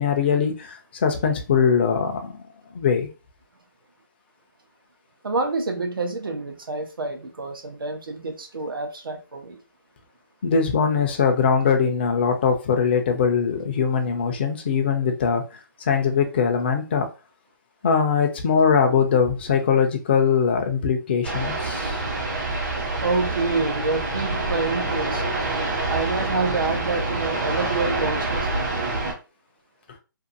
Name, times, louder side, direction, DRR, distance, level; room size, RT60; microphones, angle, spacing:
voice 1, 0.0-2.4 2.7-3.1 10.4-15.4 15.8-17.1 17.8-22.0, left 6 dB, 30° left, 0.5 m, -21 dB
voice 2, 5.2-9.6 23.0-25.2 25.9-28.5, right 3 dB, 80° right, 0.8 m, -27 dB
sound 1, 21.2-29.1, right 2 dB, 50° right, 1.1 m, -26 dB
2.6 x 2.4 x 2.6 m
hypercardioid pair, 160°, 11 cm